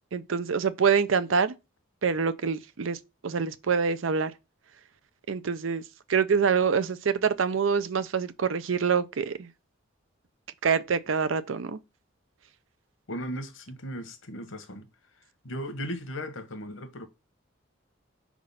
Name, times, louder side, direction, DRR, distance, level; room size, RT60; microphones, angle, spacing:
voice 1, 0.1-1.5 2.0-4.3 5.3-5.8 6.1-9.5 10.6-11.8, right 6 dB, 80° right, 0.6 m, -26 dB
voice 2, 13.1-14.9 15.4-17.1, equal, 80° left, 1.1 m, -36 dB
4.8 x 3.6 x 5.4 m
head